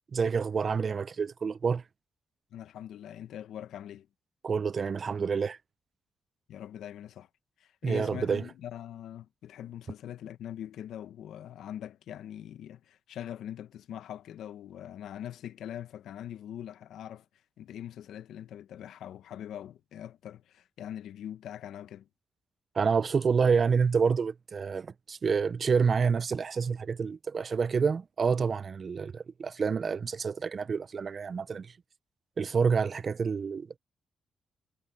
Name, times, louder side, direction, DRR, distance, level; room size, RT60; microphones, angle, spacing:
voice 1, 0.1-1.8 4.4-5.6 7.8-8.4 22.7-31.7 32.4-33.8, right 5 dB, 45° right, 0.4 m, -28 dB
voice 2, 2.5-4.1 6.5-7.3 7.6-17.3 17.6-22.1, left 10 dB, 90° left, 0.8 m, -42 dB
cardioid pair, 110°, 0 cm